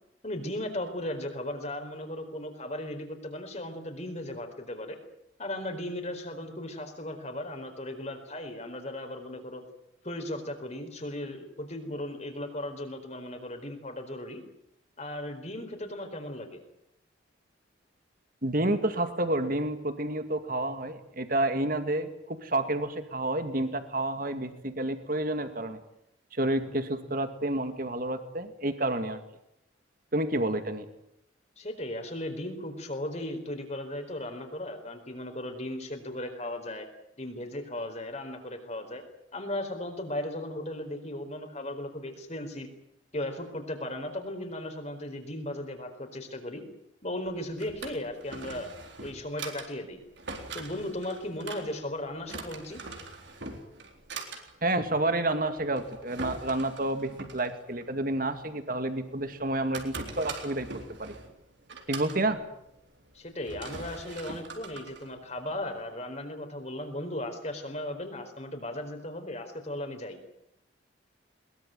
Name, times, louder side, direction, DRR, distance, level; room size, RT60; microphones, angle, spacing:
voice 1, 0.2-5.0 5.4-9.6 10.0-14.4 15.0-16.6 31.6-36.9 37.2-39.0 39.3-42.7 43.1-46.6 47.0-48.7 49.0-50.0 50.5-52.8 63.1-70.2, left 1 dB, 35° left, 6 dB, 4.4 m, -36 dB
voice 2, 18.4-25.8 26.3-29.2 30.1-30.9 54.6-61.2 61.9-62.4, right 1 dB, 45° right, 9 dB, 2.3 m, -29 dB
Drawer open or close, 47.2-65.8, right 3 dB, 65° right, 3.9 m, -43 dB
22.0 x 21.5 x 9.2 m, 0.78 s
head